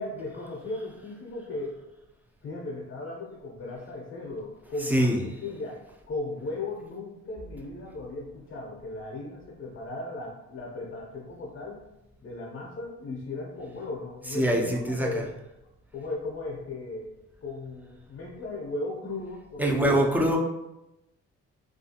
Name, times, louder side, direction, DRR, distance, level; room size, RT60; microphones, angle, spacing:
voice 1, 0.0-1.8 2.4-5.8 6.1-11.8 12.2-15.3 15.9-17.1 17.4-20.1, left 2 dB, 45° left, -3 dB, 0.6 m, -36 dB
voice 2, 4.9-5.2 14.3-15.2 19.6-20.4, right 1 dB, 5° right, 0 dB, 0.4 m, -23 dB
2.4 x 2.3 x 2.7 m, 0.92 s
cardioid pair, 90°, 30 cm